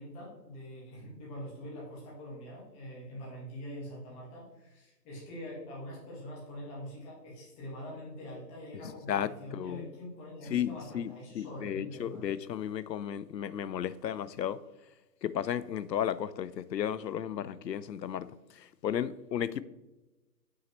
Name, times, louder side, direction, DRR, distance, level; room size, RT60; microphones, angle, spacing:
voice 1, 0.0-12.3, equal, 10° left, 1.6 m, -44 dB
voice 2, 8.7-9.9 10.5-14.6 15.2-18.3 18.6-19.6, left 9 dB, 90° left, 0.6 m, -34 dB
7.1 x 6.4 x 3.1 m
hypercardioid pair, 155°, 49 cm